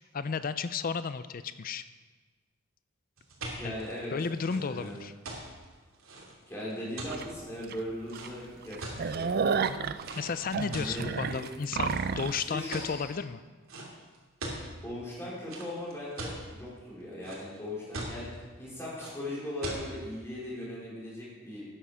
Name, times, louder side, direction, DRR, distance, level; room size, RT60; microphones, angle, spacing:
voice 1, 0.1-1.8 3.6-3.7 4.1-5.1 9.7-9.8 10.2-13.4, left 5 dB, 45° left, 13 dB, 0.4 m, -33 dB
sound 1, 3.2-9.3 10.0-10.2 10.7-11.4 11.8-12.3 12.7-13.1 13.7-13.9 14.1-14.7 15.5-16.4 16.9-17.6 17.9-18.4 19.0-19.1 19.6-19.8, right 2 dB, 75° right, 2.9 m, -40 dB
voice 2, 3.5-4.1 4.5-5.0 6.5-9.5 10.7-11.4 12.3-13.1 14.8-21.7, left 1 dB, 15° left, -7 dB, 4.4 m, -39 dB
sound 2, 7.1-7.2 7.7-7.8 8.1-8.3 8.6-12.4, right 5 dB, 50° right, 0.4 m, -31 dB
12.5 x 10.0 x 5.0 m, 1.3 s
head